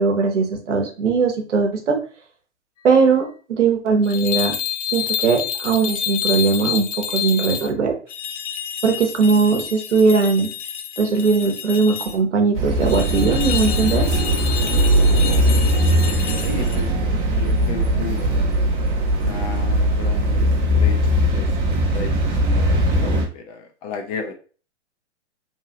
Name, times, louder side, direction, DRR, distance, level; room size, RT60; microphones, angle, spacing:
voice 1, 0.0-2.0 2.8-4.5 4.9-8.0 8.8-10.5 11.0-14.0, right 4 dB, 80° right, 3 dB, 0.9 m, -19 dB
sound 1, 4.0-7.7 8.1-12.2 12.8-16.8, left 10 dB, 80° left, 0.5 m, -29 dB
sound 2, 12.5-23.3, equal, 30° right, 0.7 m, -19 dB
voice 2, 14.7-15.9 16.4-17.0 17.4-18.4 19.2-20.5 20.7-24.3, left 4 dB, 30° left, 4 dB, 0.5 m, -34 dB
3.0 x 2.3 x 2.7 m, 0.39 s
hypercardioid pair, 115°, 36 cm